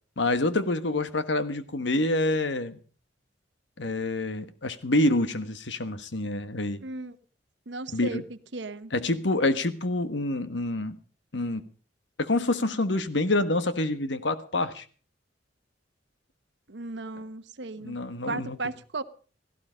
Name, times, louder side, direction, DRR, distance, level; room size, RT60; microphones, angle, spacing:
voice 1, 0.2-2.8 3.8-6.8 7.9-8.2 8.9-11.0 11.3-11.6 12.2-14.8 17.8-18.6, left 2 dB, 75° left, 1.4 m, -27 dB
voice 2, 6.8-7.2 7.7-8.2 8.5-8.9 16.7-18.0 18.2-19.0, right 3 dB, 70° right, 1.0 m, -35 dB
16.5 x 15.0 x 5.1 m
head